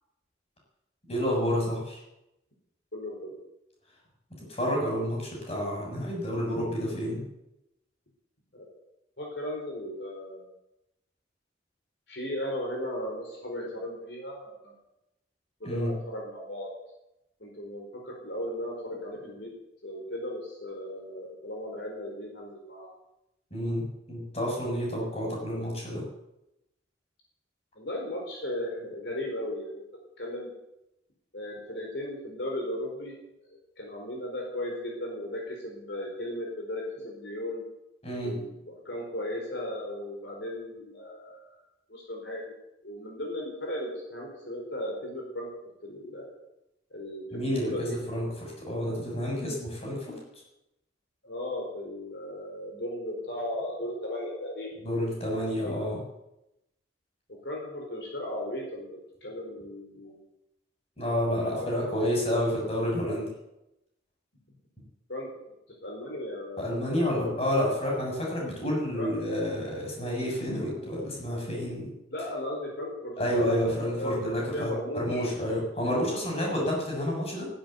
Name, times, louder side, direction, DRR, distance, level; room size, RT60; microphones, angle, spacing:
voice 1, 1.1-2.0 4.5-7.3 15.6-15.9 23.5-26.0 38.0-38.4 47.3-50.2 54.8-56.0 61.0-63.3 66.6-71.9 73.2-77.5, equal, 35° left, -1 dB, 7.1 m, -29 dB
voice 2, 2.9-3.4 8.5-8.7 9.2-10.5 12.1-14.8 15.6-16.7 17.4-19.5 19.8-22.9 25.5-25.6 27.8-29.8 30.2-30.5 31.3-33.1 33.5-37.6 38.2-41.6 41.9-42.5 42.8-45.5 45.8-46.3 46.9-48.0 48.2-48.4 51.2-54.7 55.6-56.0 57.3-60.2 61.5-61.9 65.1-65.3 65.8-67.5 68.9-69.1 71.1-71.2 72.1-75.2, left 1 dB, 75° left, -1 dB, 4.6 m, -36 dB
16.0 x 10.5 x 8.1 m, 0.89 s
head